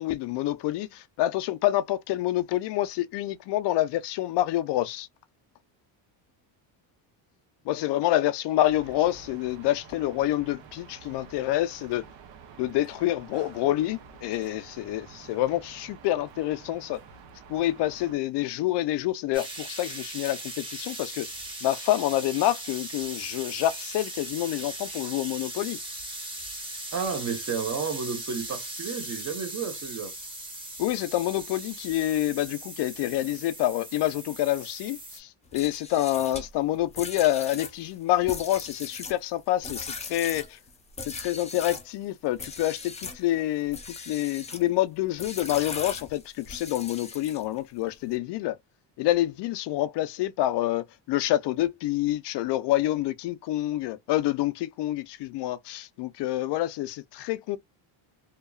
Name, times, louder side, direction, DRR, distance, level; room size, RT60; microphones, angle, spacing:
voice 1, 0.0-5.1 7.7-12.0 12.6-17.0 17.5-21.3 21.6-25.8 30.8-40.6 41.1-48.6 49.0-57.6, left 14 dB, 60° left, 0.5 m, -27 dB
sound 1, 8.7-18.2, right 6 dB, 70° right, 0.8 m, -49 dB
sound 2, 19.3-35.2, right 1 dB, 10° right, 1.0 m, -39 dB
voice 2, 26.9-30.1, right 5 dB, 35° right, 0.9 m, -32 dB
sound 3, 35.4-41.9 42.4-43.2 43.7-44.7 45.2-47.6, left 4 dB, 15° left, 0.6 m, -39 dB
2.8 x 2.3 x 2.2 m
cardioid pair, 105°, 47 cm